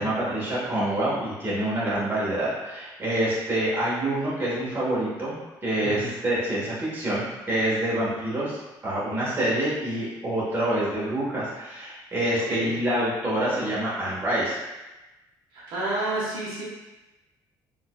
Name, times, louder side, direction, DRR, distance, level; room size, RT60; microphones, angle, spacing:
voice 1, 0.0-5.4 5.6-14.5, right 1 dB, 25° right, -8 dB, 1.3 m, -26 dB
voice 2, 15.5-16.6, right 2 dB, 70° right, -6 dB, 1.1 m, -30 dB
4.1 x 2.6 x 2.3 m, 1.1 s
cardioid pair, 125°, 8 cm